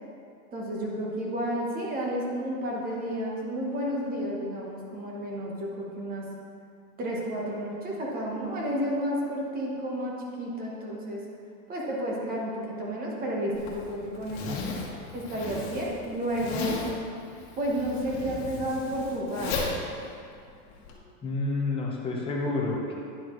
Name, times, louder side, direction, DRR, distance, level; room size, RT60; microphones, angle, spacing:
voice 1, 0.5-6.3 7.0-11.2 11.7-14.6 15.1-16.9 17.6-19.7, equal, 20° right, -3 dB, 1.1 m, -31 dB
Zipper (clothing), 13.5-21.0, left 4 dB, 50° left, 1.5 m, -36 dB
voice 2, 21.2-22.9, left 2 dB, 15° left, -2 dB, 0.9 m, -29 dB
9.9 x 6.9 x 3.1 m, 2.4 s
supercardioid pair, 155°, 42 cm